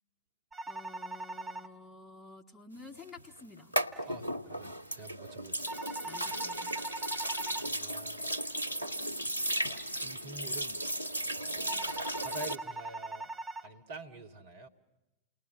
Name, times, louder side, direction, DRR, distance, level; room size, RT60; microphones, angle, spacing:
sound 1, 0.5-1.7 5.7-7.7 11.7-13.7, right 2 dB, 15° right, 1.0 m, -41 dB
voice 1, 0.7-3.7 6.0-6.7, left 3 dB, 10° left, 1.2 m, -51 dB
sound 2, 3.0-12.6, right 1 dB, 85° left, 0.8 m, -35 dB
voice 2, 4.1-5.9 7.6-8.3 8.9-9.1 10.0-10.8 11.4-13.3 13.6-14.7, right 2 dB, 55° right, 1.9 m, -47 dB
29.0 x 20.0 x 6.2 m
figure-of-eight pair, 90°, 0 cm